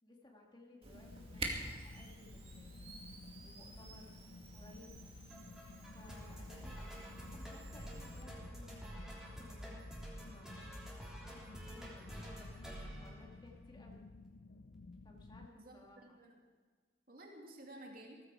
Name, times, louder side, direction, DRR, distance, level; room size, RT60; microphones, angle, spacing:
voice 1, 0.0-3.0 3.4-4.3 4.5-5.0 5.9-7.0 7.3-11.4 11.7-14.0 15.0-16.2, left 2 dB, 25° left, -1 dB, 2.2 m, -59 dB
Camera, 0.8-8.3, right 2 dB, 35° right, 2.4 m, -48 dB
sound 1, 1.0-15.5, left 3 dB, 65° left, 0.5 m, -55 dB
sound 2, 5.3-13.9, equal, 5° right, 3.5 m, -49 dB
voice 2, 15.4-16.4 17.1-18.2, right 1 dB, 55° right, 0 dB, 2.6 m, -53 dB
17.5 x 15.0 x 4.8 m, 1.5 s
head